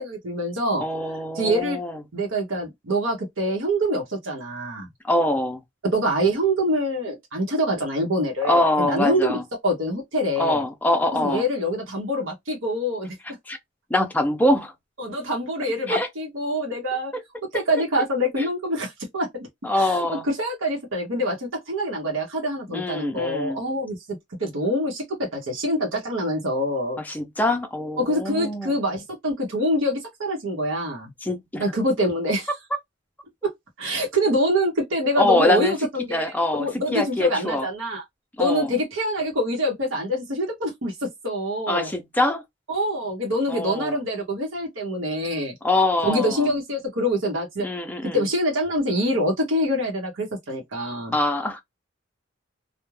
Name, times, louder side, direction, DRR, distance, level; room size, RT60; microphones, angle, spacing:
voice 1, 0.0-0.8 1.3-1.8 2.1-4.9 5.8-10.6 11.1-13.2 15.0-17.1 17.5-19.5 19.8-27.0 28.0-31.1 31.6-32.5 33.4-33.5 33.8-38.0 38.4-41.9 42.7-45.5 46.0-47.7 48.0-51.1, equal, 80° right, 0.8 m, -25 dB
voice 2, 0.8-2.0 5.0-5.6 8.4-9.4 10.4-11.4 13.5-13.6 13.9-14.7 15.9-16.1 17.1-17.2 18.4-18.5 19.6-20.2 22.7-23.6 27.0-28.7 31.2-31.6 35.2-35.8 36.1-37.7 38.4-38.7 41.7-42.4 43.5-44.0 45.6-46.5 47.6-48.2 51.1-51.6, left 1 dB, 10° left, 0.5 m, -24 dB
2.3 x 2.1 x 3.0 m
head